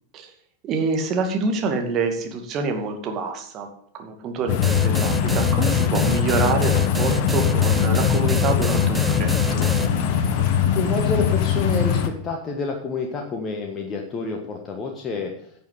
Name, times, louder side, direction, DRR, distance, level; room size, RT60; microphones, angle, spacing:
voice 1, 0.6-3.7 3.9-9.7, right 4 dB, 35° right, 4 dB, 2.3 m, -26 dB
sound 1, 4.5-12.1, left 9 dB, 45° left, 1.2 m, -21 dB
sound 2, 4.6-9.9, right 3 dB, 10° right, 0.7 m, -28 dB
sound 3, 5.4-12.0, right 3 dB, 60° right, 3.9 m, -39 dB
voice 2, 10.1-10.5 10.7-15.3, left 4 dB, 25° left, 2 dB, 1.6 m, -28 dB
11.0 x 6.8 x 7.9 m, 0.67 s
figure-of-eight pair, 90°, 0 cm